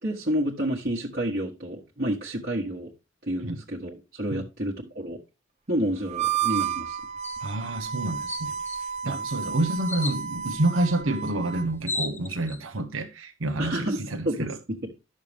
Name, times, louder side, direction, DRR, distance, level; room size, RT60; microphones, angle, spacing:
voice 1, 0.0-2.9 3.2-5.2 5.7-7.0 9.0-9.2 13.6-14.8, right 1 dB, 50° right, 1.5 m, -30 dB
Harmonica, 6.1-11.7, right 8 dB, 35° right, 0.7 m, -32 dB
sound 1, 7.2-7.4 7.9-8.0 8.3-8.8 9.9-10.2 11.3-11.4 11.6-12.6, left 2 dB, 10° left, 0.9 m, -33 dB
voice 2, 7.4-14.6, right 1 dB, 85° right, 1.0 m, -28 dB
11.0 x 6.6 x 3.5 m
head